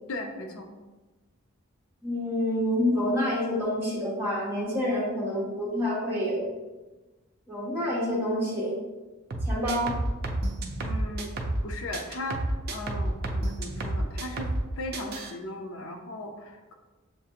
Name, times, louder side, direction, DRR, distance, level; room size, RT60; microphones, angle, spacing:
voice 1, 0.1-0.7 10.8-16.7, left 1 dB, 70° left, 3 dB, 0.5 m, -37 dB
voice 2, 2.0-6.5 7.5-8.7 9.5-9.9, left 1 dB, 10° right, -6 dB, 1.2 m, -27 dB
sound 1, 9.3-11.7 11.9-14.7 14.9-15.3, right 1 dB, 45° right, 0.5 m, -30 dB
7.1 x 2.5 x 2.8 m, 1.2 s
head